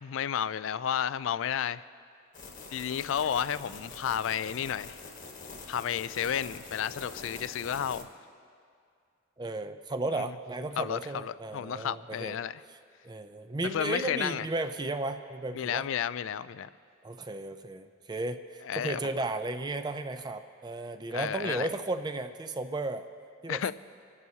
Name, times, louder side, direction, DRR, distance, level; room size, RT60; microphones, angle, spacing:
voice 1, 0.0-1.8 2.7-5.0 5.7-8.1 10.2-10.3 10.8-12.6 13.7-14.5 15.5-16.7 18.6-19.1 21.1-21.7 23.5-23.7, left 8 dB, 70° left, 0.3 m, -32 dB
sound 1, 2.3-8.0, left 3 dB, 40° left, 1.2 m, -45 dB
voice 2, 9.4-12.4 13.0-15.8 17.0-23.0 23.4-23.7, right 2 dB, 20° right, 0.4 m, -34 dB
26.5 x 11.0 x 2.8 m
head